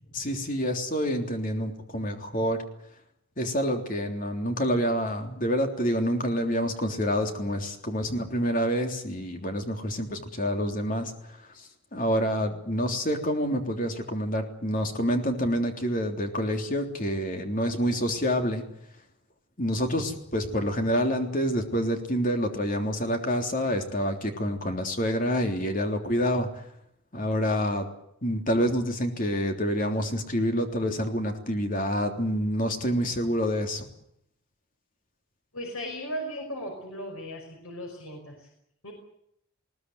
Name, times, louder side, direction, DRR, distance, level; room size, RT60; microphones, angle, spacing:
voice 1, 0.1-2.6 3.4-18.7 19.6-26.6 27.1-27.9 28.2-33.9, equal, 40° left, 4 dB, 3.4 m, -27 dB
voice 2, 35.5-38.5 38.8-38.9, equal, 80° left, 2 dB, 5.6 m, -37 dB
21.0 x 19.0 x 9.5 m, 0.74 s
head